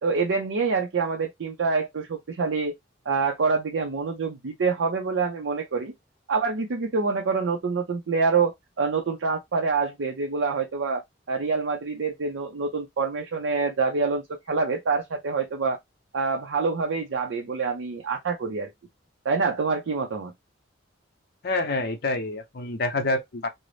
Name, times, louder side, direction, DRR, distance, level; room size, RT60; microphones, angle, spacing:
voice 1, 0.0-2.7 3.1-5.9 6.3-11.0 11.3-15.8 16.1-18.7 19.2-20.3, right 4 dB, 75° right, 0.5 m, -26 dB
voice 2, 21.4-23.5, left 2 dB, 55° left, 0.6 m, -27 dB
2.5 x 2.0 x 3.2 m
head